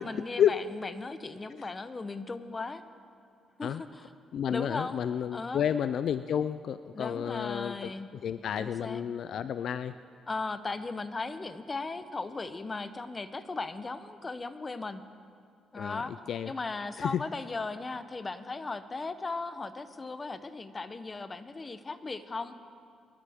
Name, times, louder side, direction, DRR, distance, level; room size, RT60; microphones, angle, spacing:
voice 1, 0.0-2.8 3.6-4.1 4.5-5.0 5.3-5.6 6.9-8.1 8.5-9.1 10.3-15.0 15.7-16.1 16.5-22.5, left 3 dB, 25° left, 11 dB, 0.7 m, -37 dB
voice 2, 4.3-7.9 8.2-9.9 15.8-16.0 16.3-16.5 17.0-17.2, left 9 dB, 65° left, 13 dB, 0.3 m, -30 dB
22.5 x 13.0 x 3.5 m, 2.3 s
cardioid pair, 90°, 0 cm